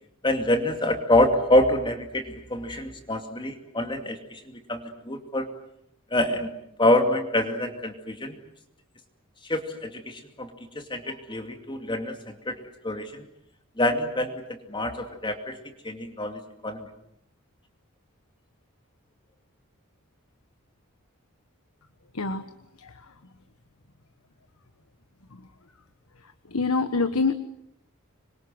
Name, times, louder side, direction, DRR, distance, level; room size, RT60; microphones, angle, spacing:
voice 1, 0.2-5.5 6.1-6.5 6.8-8.4 9.5-13.2 13.8-14.4 14.7-15.6 15.8-16.9, left 1 dB, 20° left, 5 dB, 2.5 m, -26 dB
voice 2, 26.5-27.3, left 4 dB, 75° left, 9 dB, 1.3 m, -25 dB
26.5 x 23.0 x 7.9 m, 0.76 s
head